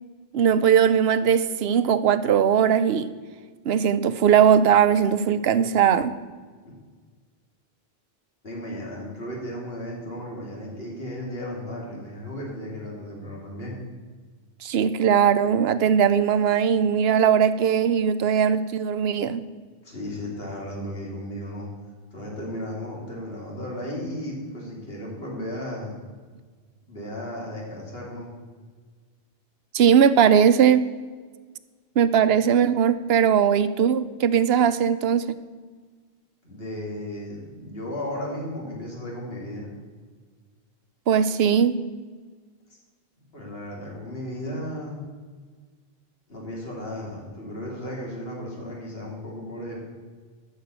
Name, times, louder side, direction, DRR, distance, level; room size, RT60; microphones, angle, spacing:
voice 1, 0.3-3.1 3.7-6.1 14.6-19.4 29.7-30.9 32.0-35.4 41.1-41.8, right 8 dB, 80° right, 13 dB, 0.9 m, -19 dB
voice 2, 8.4-13.8 19.8-21.7 22.1-26.0 26.9-28.3 32.3-32.4 36.4-39.7 43.3-45.1 46.3-49.8, left 1 dB, 70° left, -2 dB, 3.1 m, -35 dB
13.0 x 6.5 x 6.8 m, 1.5 s
omnidirectional pair, 1.0 m